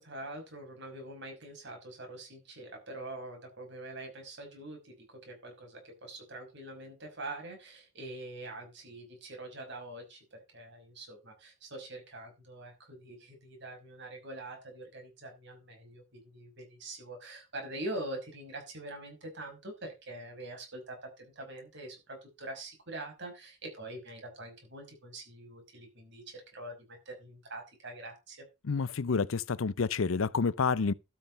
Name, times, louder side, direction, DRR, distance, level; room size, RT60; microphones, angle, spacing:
voice 1, 0.0-28.5, right 2 dB, 55° right, 5.6 m, -44 dB
voice 2, 28.6-30.9, left 5 dB, 70° left, 0.6 m, -29 dB
12.5 x 6.5 x 5.4 m
head